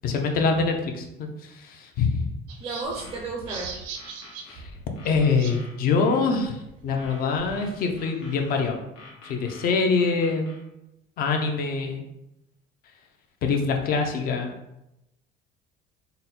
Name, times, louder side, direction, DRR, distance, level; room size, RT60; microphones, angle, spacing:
voice 1, 0.0-2.3 4.5-4.7 5.0-8.8 9.2-10.5 11.2-12.0 13.4-14.5, left 4 dB, 45° left, 4 dB, 0.6 m, -24 dB
sound 1, 2.5-5.6 5.9-6.0 6.3-8.7, right 5 dB, 75° right, 0.7 m, -40 dB
voice 2, 2.6-3.8, right 3 dB, 20° right, 1 dB, 0.4 m, -33 dB
sound 2, 3.0-4.6 5.0-6.2 7.0-8.6 9.0-10.6, left 3 dB, 80° left, 1.3 m, -48 dB
4.0 x 2.1 x 4.1 m, 0.87 s
cardioid pair, 150°, 21 cm